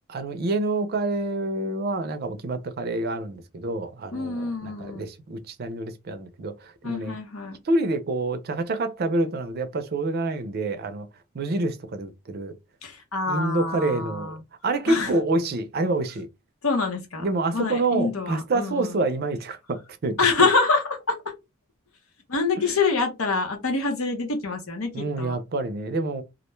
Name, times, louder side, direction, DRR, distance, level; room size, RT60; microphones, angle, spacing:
voice 1, 0.1-7.2 7.6-11.1 11.3-12.5 13.3-14.4 14.6-16.3 17.2-20.5 24.9-26.2, right 2 dB, 50° right, 0.4 m, -27 dB
voice 2, 4.1-5.0 6.8-7.6 12.8-14.4 14.9-15.1 16.6-19.0 20.2-21.2 22.3-25.4, left 4 dB, 90° left, 0.8 m, -26 dB
2.4 x 2.1 x 3.0 m
head